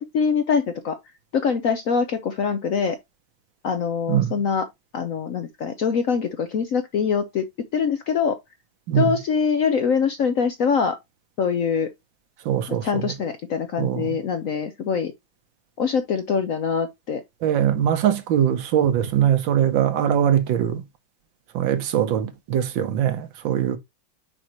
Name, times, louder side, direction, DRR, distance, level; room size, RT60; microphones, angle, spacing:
voice 1, 0.1-1.0 1.3-3.0 3.6-4.7 4.9-7.5 7.7-8.4 8.9-11.0 11.4-11.9 12.8-15.1 15.8-17.2, left 6 dB, 60° left, 0.9 m, -23 dB
voice 2, 12.4-13.1 13.8-14.2 17.4-20.8 21.5-23.8, right 10 dB, 75° right, 1.6 m, -22 dB
6.4 x 5.0 x 2.9 m
omnidirectional pair, 2.1 m